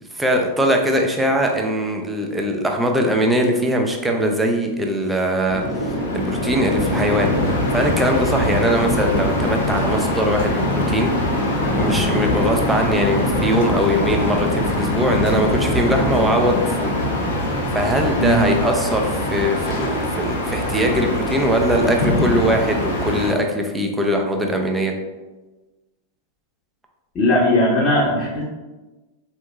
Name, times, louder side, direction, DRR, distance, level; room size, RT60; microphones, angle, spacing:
voice 1, 0.1-11.1 11.8-16.9 17.7-24.9, equal, 5° right, 2 dB, 0.5 m, -21 dB
sound 1, 5.5-23.3, left 1 dB, 60° left, 0.7 m, -22 dB
voice 2, 18.2-18.5 27.1-28.4, left 1 dB, 25° left, -7 dB, 0.8 m, -18 dB
4.3 x 2.9 x 2.3 m, 1.2 s
figure-of-eight pair, 90°, 0 cm